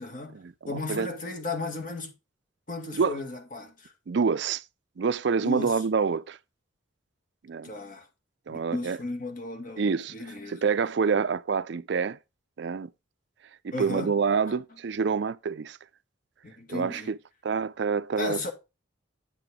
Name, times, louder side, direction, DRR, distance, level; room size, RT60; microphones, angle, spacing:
voice 1, 0.0-2.2 2.7-3.9 5.4-5.8 7.6-8.1 8.5-10.6 13.7-14.1 14.5-14.6 16.4-17.1 18.2-18.5, left 3 dB, 45° left, 1.9 m, -35 dB
voice 2, 0.7-1.1 3.0-3.2 4.1-4.6 5.0-6.4 7.4-7.7 8.5-9.0 9.8-10.1 10.5-12.2 12.6-12.9 13.6-15.8 16.7-17.2 17.4-18.5, right 5 dB, 60° right, 0.4 m, -27 dB
9.8 x 6.0 x 3.6 m
head